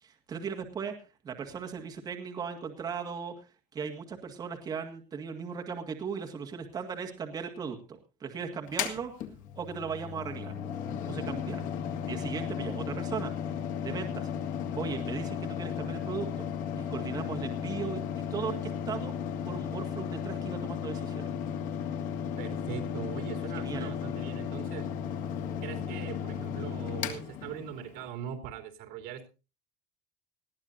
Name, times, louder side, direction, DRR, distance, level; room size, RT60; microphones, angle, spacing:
voice 1, 0.0-0.9 1.2-9.1 9.6-10.5 11.0-11.6 12.0-13.3 13.8-14.3 14.7-16.5 16.8-19.1 19.5-21.3 23.5-23.9, right 6 dB, 25° right, 3 dB, 1.9 m, -37 dB
Mechanical fan, 8.7-28.1, left 8 dB, 55° left, 2.2 m, -35 dB
voice 2, 22.4-24.9 25.6-29.3, right 9 dB, 65° right, 4 dB, 3.2 m, -41 dB
20.5 x 14.5 x 2.6 m, 0.32 s
cardioid pair, 175°, 16 cm